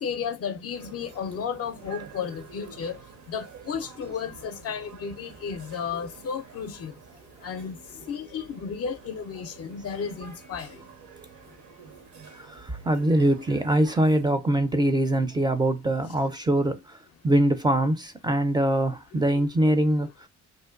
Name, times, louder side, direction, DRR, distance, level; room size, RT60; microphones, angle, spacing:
voice 1, 0.0-3.0 3.3-6.9 7.4-7.8 8.1-10.8 19.3-19.4, left 6 dB, 55° left, 0.4 m, -33 dB
sound 1, 0.7-14.3, right 6 dB, 70° right, 0.8 m, -49 dB
voice 2, 12.3-17.0 17.2-20.3, right 1 dB, 15° right, 0.3 m, -23 dB
2.5 x 2.1 x 2.4 m
cardioid pair, 90°, 30 cm